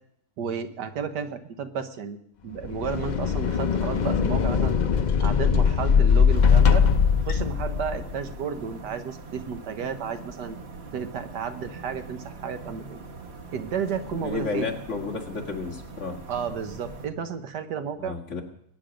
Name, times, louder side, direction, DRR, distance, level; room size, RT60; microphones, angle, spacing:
voice 1, 0.4-2.2 2.4-4.8 5.2-6.8 7.3-10.6 10.9-13.0 13.5-14.7 16.3-18.2, right 7 dB, 80° right, 9 dB, 1.6 m, -32 dB
sound 1, 2.6-8.2, left 6 dB, 75° left, 0.4 m, -21 dB
sound 2, 6.3-17.1, right 3 dB, 45° right, 1.3 m, -42 dB
voice 2, 14.1-16.2 18.0-18.4, left 4 dB, 45° left, 1 dB, 2.1 m, -32 dB
21.5 x 9.5 x 5.1 m, 0.70 s
omnidirectional pair, 1.8 m